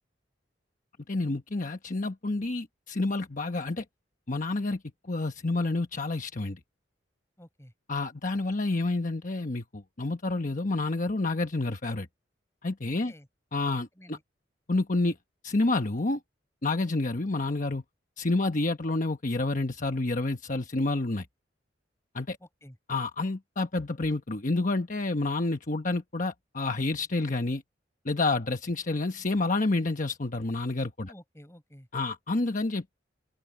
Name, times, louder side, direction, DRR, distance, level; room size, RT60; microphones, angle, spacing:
voice 1, 1.1-3.8 4.3-4.8 5.1-6.6 7.9-12.1 12.6-13.1 13.5-14.2 14.7-15.1 15.4-16.2 16.6-17.8 18.2-21.3 22.1-22.4 22.9-27.6 28.0-31.1 31.9-33.0, left 2 dB, 45° left, 1.1 m, -29 dB
voice 2, 7.4-7.7 12.8-13.3 14.0-14.2 22.4-22.8 31.0-31.9, equal, 15° left, 7.9 m, -51 dB
open air
head